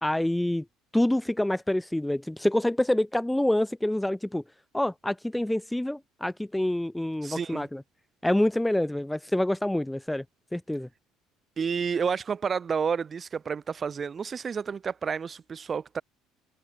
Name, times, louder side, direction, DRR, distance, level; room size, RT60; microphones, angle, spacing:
voice 1, 0.0-0.6 0.9-4.4 4.7-7.8 8.2-10.2 10.5-10.9, left 1 dB, 5° left, 1.9 m, -26 dB
voice 2, 7.2-7.7 11.6-16.0, right 6 dB, 30° right, 3.3 m, -30 dB
figure-of-eight pair, 55°, 0 cm